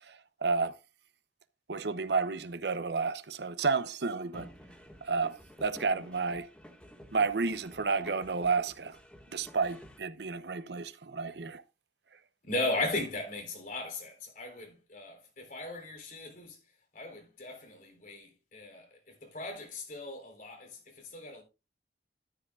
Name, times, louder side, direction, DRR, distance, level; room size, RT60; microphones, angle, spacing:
voice 1, 0.1-0.8 1.7-4.5 5.0-6.5 7.1-9.0 9.3-11.6, right 4 dB, 70° right, 0.8 m, -31 dB
sound 1, 4.3-10.0, equal, 5° left, 1.7 m, -52 dB
voice 2, 12.4-16.6 16.9-21.4, left 2 dB, 45° left, 4.0 m, -37 dB
13.0 x 10.0 x 2.4 m
head